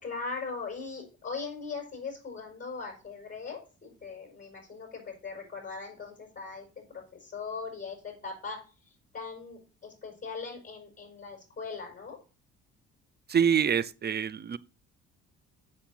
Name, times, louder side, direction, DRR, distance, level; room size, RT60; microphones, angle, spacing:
voice 1, 0.0-12.2, left 4 dB, 25° left, 5.8 m, -40 dB
voice 2, 13.3-14.6, right 7 dB, 35° right, 0.6 m, -26 dB
7.2 x 6.5 x 5.6 m
supercardioid pair, 65°, 30 cm